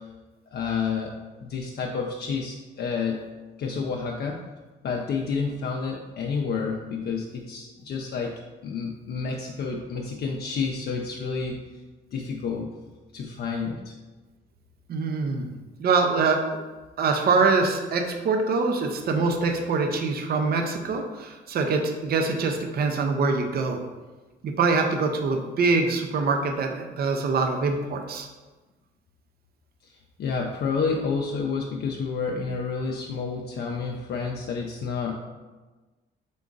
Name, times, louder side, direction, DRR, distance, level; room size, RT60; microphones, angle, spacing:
voice 1, 0.5-1.2 1.4-3.2 3.6-4.4 4.8-11.6 12.1-12.7 13.1-13.9 29.8-29.9 30.2-35.1, left 5 dB, 55° left, 0 dB, 0.5 m, -29 dB
voice 2, 14.9-15.5 15.8-16.4 17.0-23.8 24.4-28.3, right 4 dB, 50° right, 4 dB, 0.6 m, -24 dB
3.7 x 3.6 x 3.8 m, 1.2 s
cardioid pair, 90°, 20 cm